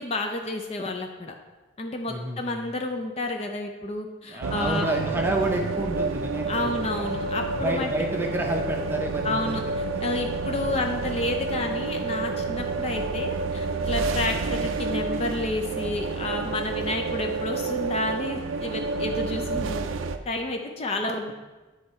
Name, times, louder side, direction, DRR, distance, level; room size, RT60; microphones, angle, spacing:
voice 1, 0.0-1.3 1.8-4.9 6.5-7.9 8.2-8.3 9.2-19.9 20.3-21.3, left 2 dB, 30° left, 4 dB, 0.4 m, -30 dB
voice 2, 2.1-2.6 4.3-7.1 7.5-9.6 9.9-10.0 10.5-10.7, right 1 dB, 10° right, 2 dB, 0.6 m, -30 dB
sound 1, 4.4-20.2, right 3 dB, 80° right, 0.4 m, -29 dB
9.7 x 3.4 x 4.3 m, 1.2 s
head